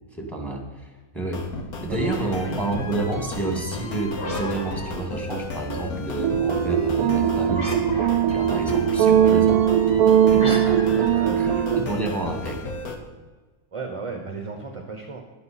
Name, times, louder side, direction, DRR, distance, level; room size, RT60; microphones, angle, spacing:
voice 1, 0.1-1.4 1.8-7.7 8.3-9.5 10.3-11.1 11.4-12.6, right 2 dB, ahead, 1 dB, 2.1 m, -29 dB
sound 1, 1.2-13.0, left 3 dB, 90° left, 1.8 m, -34 dB
voice 2, 2.4-2.9 9.1-9.4 10.3-10.7 11.1-11.7 13.7-15.2, right 4 dB, 25° right, 3 dB, 0.9 m, -35 dB
sound 2, 4.1-5.6 7.5-8.5 10.4-12.2, left 1 dB, 35° left, 1.8 m, -36 dB
sound 3, 6.2-11.9, right 9 dB, 85° right, 1.1 m, -20 dB
12.0 x 10.5 x 4.3 m, 1.3 s
omnidirectional pair, 1.5 m